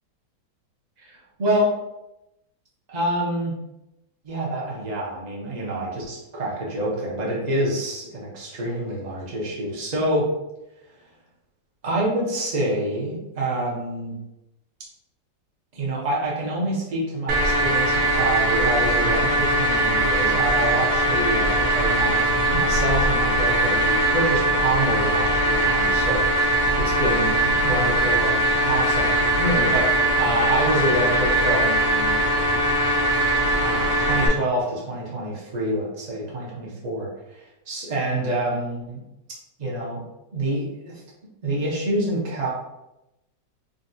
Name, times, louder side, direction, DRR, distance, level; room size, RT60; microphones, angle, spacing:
voice 1, 1.0-1.7 2.9-3.6 4.2-10.3 11.8-14.2 15.7-26.3 26.7-32.2 33.6-39.0 39.6-40.0 40.3-41.0 41.4-42.5, right 1 dB, 50° right, -4 dB, 0.4 m, -27 dB
sound 1, 17.3-34.3, right 1 dB, 75° right, 1.1 m, -21 dB
3.8 x 2.3 x 2.6 m, 0.91 s
omnidirectional pair, 1.8 m